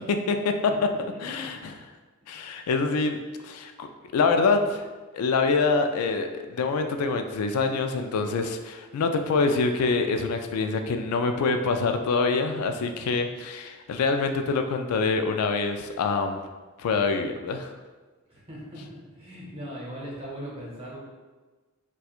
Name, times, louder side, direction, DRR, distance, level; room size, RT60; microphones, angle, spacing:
voice 1, 0.0-0.5 1.2-1.8 2.3-3.2 3.4-3.9 4.1-4.8 5.1-16.4 16.8-17.7, left 4 dB, 85° left, 6 dB, 0.3 m, -25 dB
voice 2, 0.7-1.7 2.3-2.4 18.3-21.0, equal, 25° right, -5 dB, 0.8 m, -40 dB
4.2 x 2.3 x 2.4 m, 1.3 s
head